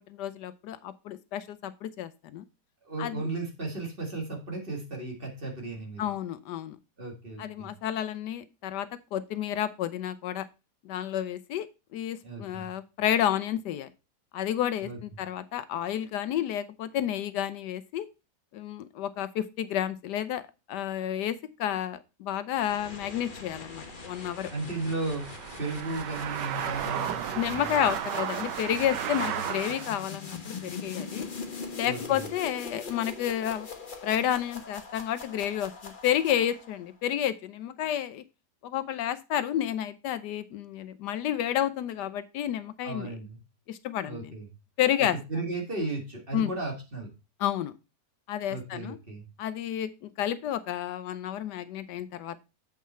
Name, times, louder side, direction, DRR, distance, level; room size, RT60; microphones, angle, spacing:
voice 1, 0.0-2.4 3.0-3.3 6.0-6.8 7.4-10.5 10.8-11.7 11.9-13.9 14.3-18.1 18.5-20.4 20.7-24.5 27.4-31.3 31.7-33.7 34.0-38.2 38.6-43.1 43.7-44.3 44.8-45.2 46.3-46.5 47.4-47.7 48.3-49.0 49.4-52.4, left 11 dB, 75° left, 14 dB, 1.2 m, -30 dB
voice 2, 2.8-6.0 7.0-7.7 12.2-12.7 14.8-15.0 24.5-25.3 25.6-27.8 31.8-32.2 42.8-43.4 44.0-44.5 45.0-47.1 48.5-49.2, right 2 dB, 30° right, 0 dB, 2.0 m, -35 dB
sound 1, 22.6-36.9, left 4 dB, 35° left, 1.1 m, -42 dB
sound 2, 22.9-30.1, right 10 dB, 85° right, 1.3 m, -35 dB
7.4 x 5.6 x 4.3 m, 0.27 s
omnidirectional pair, 1.8 m